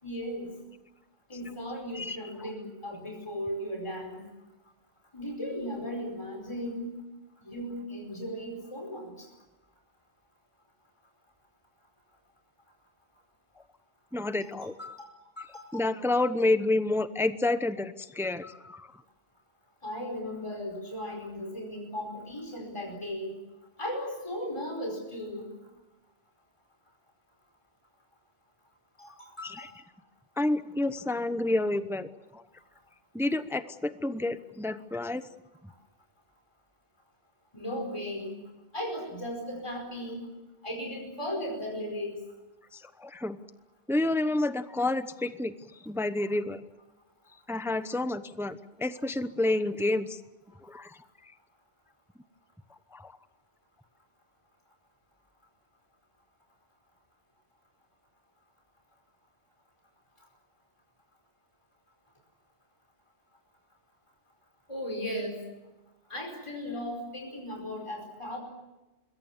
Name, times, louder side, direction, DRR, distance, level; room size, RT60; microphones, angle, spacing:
voice 1, 0.0-0.5 1.3-4.2 5.1-7.0 7.4-9.3 14.4-15.0 15.4-15.9 19.8-23.3 23.8-25.5 29.0-29.7 37.5-38.4 38.7-40.3 40.6-42.2 64.7-65.4 66.1-68.4, equal, 25° left, 1 dB, 5.0 m, -36 dB
voice 2, 14.1-14.7 15.7-18.9 29.4-29.7 30.4-32.4 33.1-35.3 42.7-43.4 43.9-45.5 45.8-46.6 47.5-50.2 50.6-51.0 52.9-53.1, left 2 dB, 5° right, 11 dB, 0.8 m, -29 dB
26.5 x 21.5 x 7.3 m, 1.1 s
omnidirectional pair, 1.1 m